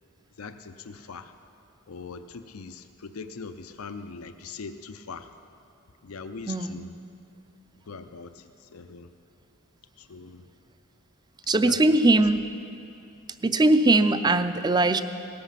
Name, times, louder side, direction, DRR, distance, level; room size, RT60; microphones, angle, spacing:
voice 1, 0.4-1.3 1.9-5.3 6.0-6.9 7.9-9.1 10.0-10.5 11.6-12.0, left 4 dB, 85° left, 9 dB, 0.6 m, -41 dB
voice 2, 6.5-6.8 11.5-12.4 13.4-15.0, right 2 dB, 20° right, 10 dB, 0.5 m, -20 dB
17.5 x 14.0 x 5.8 m, 2.6 s
head